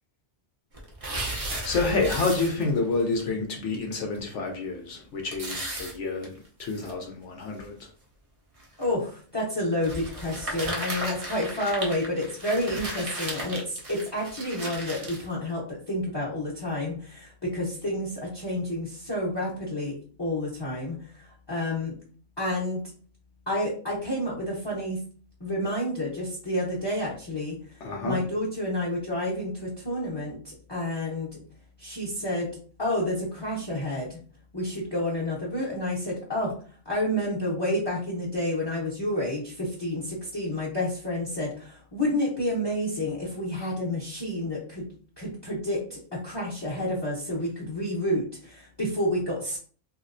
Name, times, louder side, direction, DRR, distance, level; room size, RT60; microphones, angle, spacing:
sound 1, 0.7-2.9 3.2-3.3 3.7-3.8 4.2-4.3 5.3-6.9 7.6-7.7 8.6-8.9 9.8-15.3, right 1 dB, 35° right, 0.6 m, -35 dB
voice 1, 1.2-6.3 6.6-7.9 12.8-13.0 27.8-28.2, left 3 dB, 65° left, 0.8 m, -29 dB
voice 2, 8.8-21.9 22.4-22.8 23.5-25.0 25.4-27.6 28.0-31.3 31.8-32.5 32.8-34.2 34.5-36.5 36.8-44.9 45.2-49.6, left 1 dB, 25° left, 0.7 m, -29 dB
3.1 x 2.7 x 2.5 m
omnidirectional pair, 1.5 m